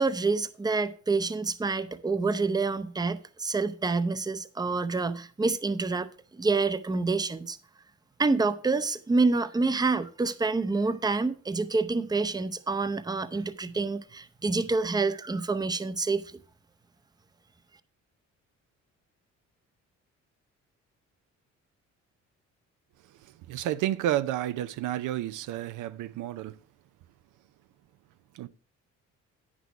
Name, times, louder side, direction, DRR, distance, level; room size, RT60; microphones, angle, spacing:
voice 1, 0.0-6.1 6.3-7.6 8.2-16.2, right 3 dB, 15° right, 0.6 m, -27 dB
voice 2, 23.2-26.5 28.3-28.5, right 12 dB, 85° right, 0.5 m, -31 dB
9.3 x 6.2 x 4.7 m
cardioid pair, 90°, 30 cm